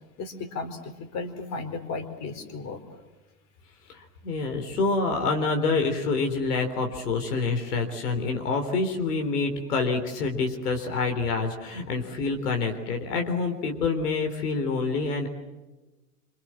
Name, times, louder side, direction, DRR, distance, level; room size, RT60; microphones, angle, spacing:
voice 1, 0.2-2.8, left 4 dB, 35° left, 8 dB, 4.3 m, -35 dB
voice 2, 3.9-15.3, left 4 dB, 75° left, 5 dB, 3.8 m, -27 dB
27.0 x 26.5 x 7.5 m, 1.1 s
hypercardioid pair, 120°, 46 cm